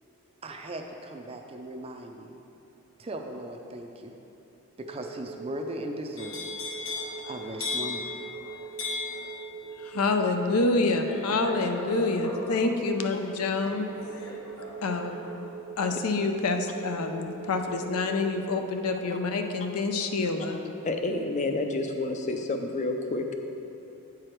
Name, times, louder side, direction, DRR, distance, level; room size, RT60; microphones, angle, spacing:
voice 1, 0.4-2.4 3.0-4.1 4.8-6.5 7.3-8.1, right 1 dB, 25° right, 4 dB, 0.4 m, -38 dB
sound 1, 4.8-18.5, right 6 dB, 85° right, 1.3 m, -42 dB
sound 2, 6.2-18.1 18.5-18.9, left 3 dB, 65° left, 1.2 m, -39 dB
voice 2, 9.8-13.9 14.8-15.2 15.8-20.6, left 3 dB, 80° left, 5 dB, 0.5 m, -27 dB
voice 3, 20.8-23.3, left 2 dB, 30° left, 5 dB, 0.5 m, -29 dB
8.6 x 4.8 x 4.5 m, 2.9 s
head